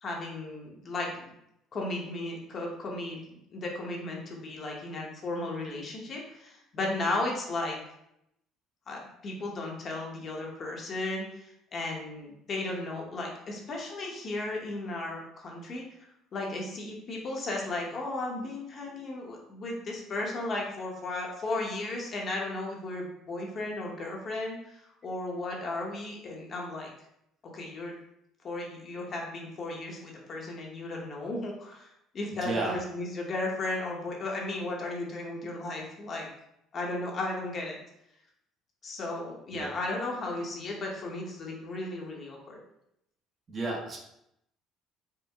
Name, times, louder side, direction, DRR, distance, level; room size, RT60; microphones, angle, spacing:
voice 1, 0.0-1.3 1.7-7.8 8.9-15.8 16.3-26.9 27.4-27.9 28.4-36.3 36.7-37.8 38.8-42.6, left 2 dB, 35° left, -1 dB, 0.8 m, -35 dB
voice 2, 32.4-32.8 39.5-39.7 43.5-44.0, right 2 dB, 30° right, 0 dB, 0.8 m, -32 dB
4.5 x 2.1 x 3.4 m, 0.78 s
cardioid pair, 130°, 0 cm